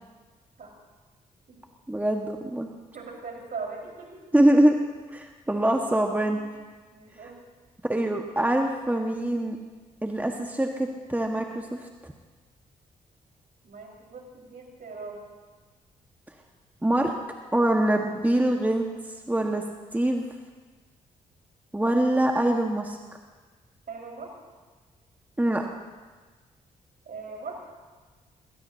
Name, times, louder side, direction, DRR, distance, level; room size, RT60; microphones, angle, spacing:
voice 1, 1.9-2.7 4.3-4.8 5.1-6.4 7.8-9.6 10.0-11.8 16.8-17.1 17.5-18.9 19.3-19.6 19.9-20.3 21.7-23.0 25.4-25.6, right 1 dB, 10° right, 2 dB, 1.6 m, -24 dB
voice 2, 2.9-4.2 6.9-7.4 13.6-15.2 23.9-24.3 27.1-27.6, right 4 dB, 55° right, -1 dB, 5.2 m, -40 dB
22.5 x 19.5 x 2.9 m, 1.4 s
hypercardioid pair, 40°, 18 cm